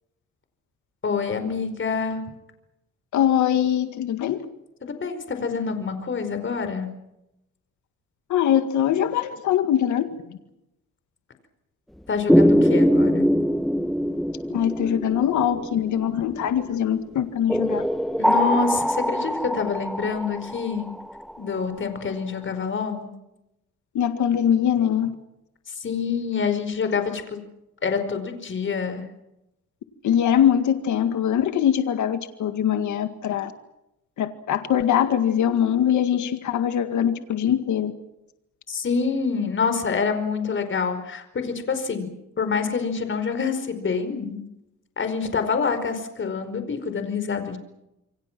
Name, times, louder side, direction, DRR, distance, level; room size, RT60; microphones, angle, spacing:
voice 1, 1.0-2.2 4.8-6.9 12.1-13.3 18.2-20.9 21.4-23.1 25.7-27.4 27.8-29.0 38.7-44.4 45.0-47.6, left 5 dB, 40° left, 8 dB, 5.0 m, -26 dB
voice 2, 3.1-4.4 8.3-10.4 14.5-17.8 23.9-25.1 30.0-33.5 34.2-37.9, left 9 dB, 75° left, 8 dB, 2.0 m, -22 dB
sound 1, 12.3-16.5 17.5-21.3, equal, ahead, 1.0 m, -22 dB
28.0 x 24.5 x 6.1 m, 0.89 s
cardioid pair, 90°, 30 cm